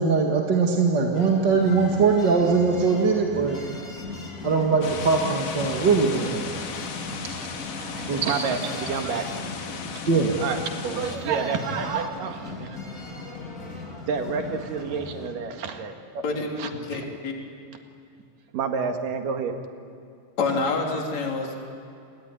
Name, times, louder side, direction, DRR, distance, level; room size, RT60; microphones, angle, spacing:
voice 1, 0.0-3.6 4.4-6.7 8.1-8.3 10.1-10.4, right 4 dB, 40° right, 1 dB, 2.0 m, -21 dB
sound 1, 1.1-15.3, left 3 dB, 25° left, 3.1 m, -38 dB
sound 2, 4.8-11.2, left 6 dB, 70° left, 3.4 m, -36 dB
voice 2, 7.8-12.8 14.0-16.2 16.6-17.0 18.5-19.6, right 5 dB, 75° right, 5 dB, 3.5 m, -30 dB
voice 3, 16.8-17.3 20.4-21.6, left 3 dB, 55° left, 1 dB, 4.4 m, -27 dB
28.5 x 21.0 x 9.8 m, 2.5 s
omnidirectional pair, 3.9 m